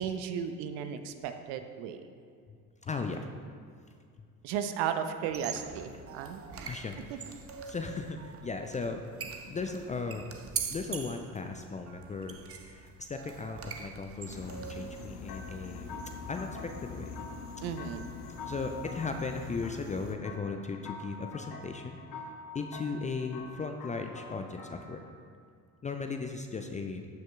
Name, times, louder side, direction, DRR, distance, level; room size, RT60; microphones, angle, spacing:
voice 1, 0.0-2.0 4.4-6.7 7.1-7.2 17.6-18.1, right 8 dB, 55° right, 8 dB, 0.8 m, -35 dB
voice 2, 2.8-3.3 6.6-7.3 7.7-9.0 9.5-10.3 10.7-12.4 12.6-15.9 16.3-17.2 18.4-22.0 22.5-25.0 25.8-27.1, left 4 dB, 15° left, 5 dB, 0.4 m, -37 dB
sound 1, 5.2-15.1, right 6 dB, 25° right, 0.9 m, -43 dB
sound 2, 14.3-20.2, left 5 dB, 60° left, 1.1 m, -44 dB
sound 3, 15.3-25.2, left 3 dB, 40° left, 1.5 m, -46 dB
14.5 x 8.9 x 2.4 m, 2.3 s
figure-of-eight pair, 60°, 50 cm